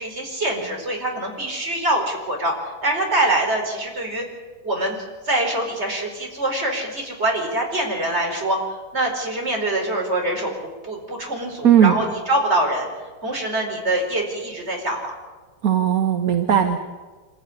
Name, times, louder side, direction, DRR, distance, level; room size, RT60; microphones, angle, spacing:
voice 1, 0.0-2.5 2.8-4.2 4.6-5.0 5.2-8.6 8.9-10.5 10.8-12.9 13.2-15.1, right 1 dB, 30° right, 1 dB, 5.0 m, -24 dB
voice 2, 11.6-12.0 15.6-16.8, right 9 dB, 45° right, 5 dB, 1.5 m, -17 dB
26.5 x 15.0 x 9.9 m, 1.4 s
omnidirectional pair, 2.4 m